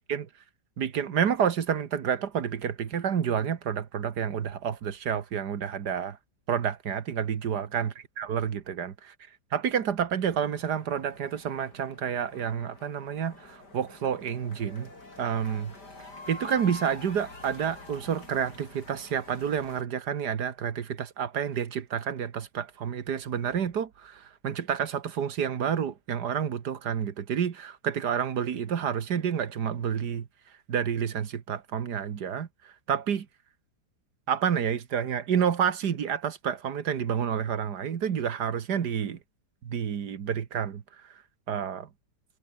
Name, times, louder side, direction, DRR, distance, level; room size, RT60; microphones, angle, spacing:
voice 1, 0.8-6.2 6.5-7.9 8.2-8.9 9.5-14.9 15.2-15.7 16.3-30.3 30.7-33.3 34.3-39.2 39.6-40.8 41.5-41.9, right 8 dB, 70° right, 2.0 m, -29 dB
sound 1, 10.4-19.8, left 2 dB, 75° left, 6.6 m, -47 dB
omnidirectional pair, 1.8 m